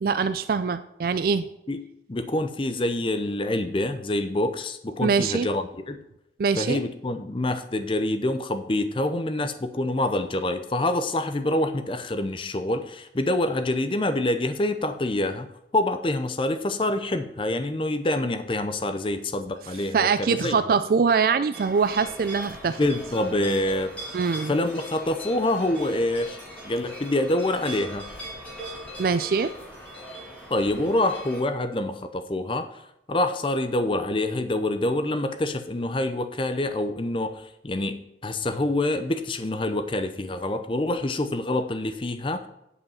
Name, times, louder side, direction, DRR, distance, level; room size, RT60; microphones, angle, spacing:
voice 1, 0.0-1.5 5.0-5.5 6.4-6.8 19.9-22.8 24.1-24.5 29.0-29.5, right 5 dB, 50° right, 12 dB, 0.3 m, -23 dB
voice 2, 2.1-6.0 6.6-15.5 15.7-20.7 22.8-23.9 24.5-26.4 26.6-28.1 30.5-32.8 33.1-42.5, left 1 dB, 30° left, 8 dB, 0.6 m, -26 dB
sound 1, 21.5-31.4, equal, 10° left, 2.5 m, -40 dB
9.6 x 5.4 x 5.6 m, 0.83 s
head